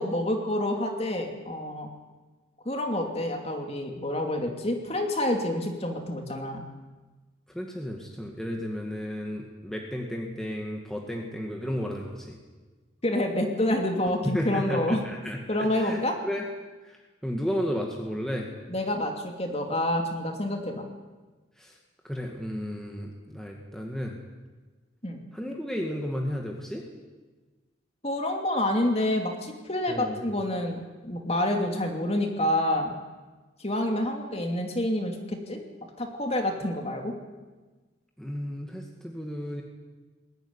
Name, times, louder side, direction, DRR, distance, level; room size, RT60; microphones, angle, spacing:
voice 1, 0.0-1.9 2.6-6.6 13.0-15.0 15.5-16.1 18.7-20.8 25.0-25.2 28.0-32.9 33.6-35.6 36.0-37.1, left 1 dB, 30° left, 3 dB, 2.7 m, -28 dB
voice 2, 7.5-12.4 14.2-16.4 16.8-17.0 17.2-18.5 21.6-21.8 22.0-24.2 25.3-26.8 29.9-30.2 38.2-39.6, equal, ahead, 0 dB, 1.9 m, -33 dB
21.0 x 14.5 x 9.8 m, 1.3 s
head